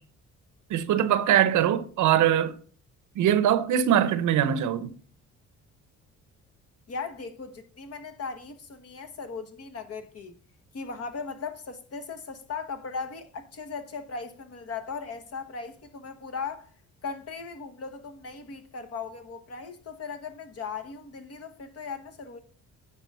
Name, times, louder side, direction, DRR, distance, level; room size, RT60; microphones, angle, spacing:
voice 1, 0.7-2.5 3.2-4.9, right 10 dB, 80° right, 0.8 m, -22 dB
voice 2, 6.9-10.4 10.7-16.7 17.0-22.4, left 5 dB, 55° left, 1.3 m, -38 dB
9.5 x 3.8 x 5.6 m
cardioid pair, 90°, 30 cm